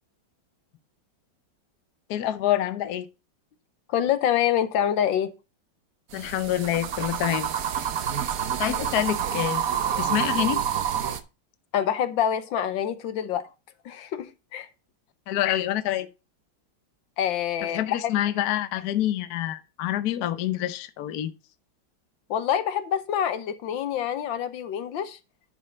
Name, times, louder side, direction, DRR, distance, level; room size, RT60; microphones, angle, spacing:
voice 1, 2.1-3.1 6.1-7.5 8.6-9.6 10.0-10.6 15.3-16.1 17.6-21.3, left 12 dB, 60° left, 1.2 m, -27 dB
voice 2, 3.9-5.3 11.7-13.5 13.8-14.7 17.2-18.0 22.3-25.2, left 9 dB, 80° left, 1.6 m, -26 dB
sound 1, 6.1-11.2, right 9 dB, 55° right, 1.1 m, -28 dB
11.0 x 5.4 x 4.1 m
omnidirectional pair, 2.1 m